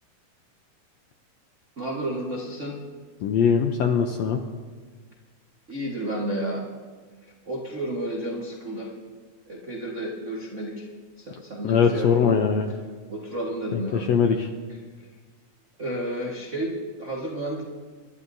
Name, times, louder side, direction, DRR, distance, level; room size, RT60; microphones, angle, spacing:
voice 1, 1.8-2.8 5.7-6.6 7.4-8.9 9.5-10.9 11.2-12.5 13.1-14.0 15.8-17.6, right 1 dB, 60° right, -2 dB, 0.7 m, -31 dB
voice 2, 3.2-4.4 11.6-12.7 13.7-14.5, left 7 dB, 75° left, 4 dB, 1.5 m, -21 dB
26.5 x 11.5 x 2.7 m, 1.5 s
omnidirectional pair, 3.7 m